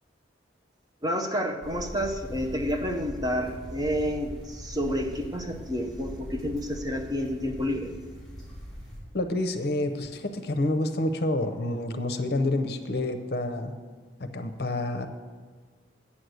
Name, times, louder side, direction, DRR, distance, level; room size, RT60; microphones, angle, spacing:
voice 1, 1.0-7.9, equal, 20° right, 3 dB, 0.7 m, -29 dB
sound 1, 1.6-9.0, equal, ahead, 3.3 m, -41 dB
voice 2, 9.1-13.7 14.2-15.1, left 2 dB, 60° left, 8 dB, 0.7 m, -28 dB
8.5 x 6.5 x 7.9 m, 1.5 s
head